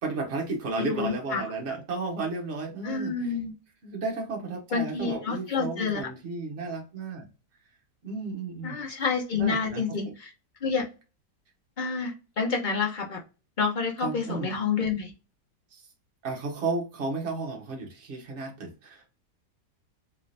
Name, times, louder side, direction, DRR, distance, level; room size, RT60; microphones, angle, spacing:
voice 1, 0.0-3.3 3.8-7.3 8.0-8.8 9.4-10.1 14.0-14.5 15.7-15.8 16.2-19.1, right 3 dB, 45° right, 0 dB, 1.3 m, -33 dB
voice 2, 0.8-1.4 2.8-3.5 4.7-6.0 8.6-10.3 10.6-10.8 11.8-13.2 13.6-15.1, left 5 dB, 40° left, 0 dB, 0.7 m, -28 dB
3.7 x 3.3 x 2.6 m, 0.31 s
omnidirectional pair, 1.8 m